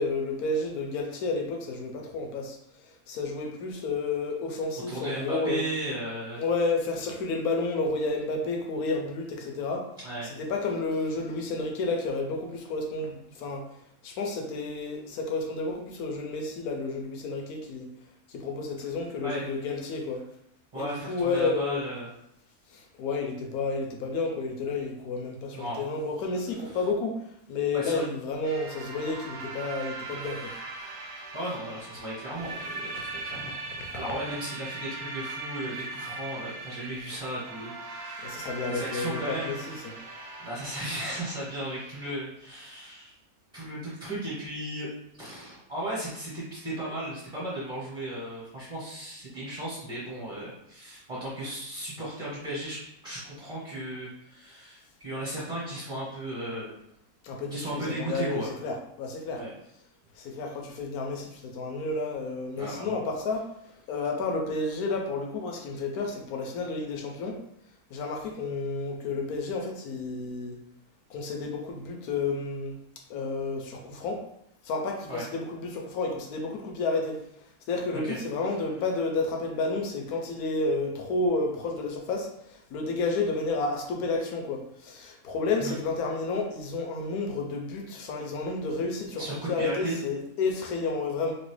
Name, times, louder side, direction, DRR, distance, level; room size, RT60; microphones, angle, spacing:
voice 1, 0.0-5.6 6.4-9.9 10.2-13.6 14.0-17.9 18.3-20.2 20.7-21.8 22.7-27.2 27.5-30.5 32.5-32.6 32.9-33.5 38.2-40.0 57.2-59.4 60.1-63.4 63.9-67.4 67.9-70.6 71.1-72.8 73.1-74.2 74.6-77.2 77.7-91.3, left 3 dB, 80° left, 2 dB, 1.1 m, -31 dB
voice 2, 4.9-6.4 10.0-10.3 19.2-19.5 20.7-22.1 25.5-25.8 26.6-26.8 27.7-28.0 31.3-33.5 33.9-39.5 40.4-43.1 43.5-44.9 45.2-56.7 57.5-58.5 59.3-59.5 62.6-63.0 75.1-75.2 77.9-78.2 85.6-85.7 89.2-89.9, right 1 dB, 25° right, -8 dB, 1.0 m, -36 dB
sound 1, 28.4-42.1, right 3 dB, 75° right, 0.5 m, -40 dB
3.0 x 2.7 x 3.1 m, 0.79 s
omnidirectional pair, 1.6 m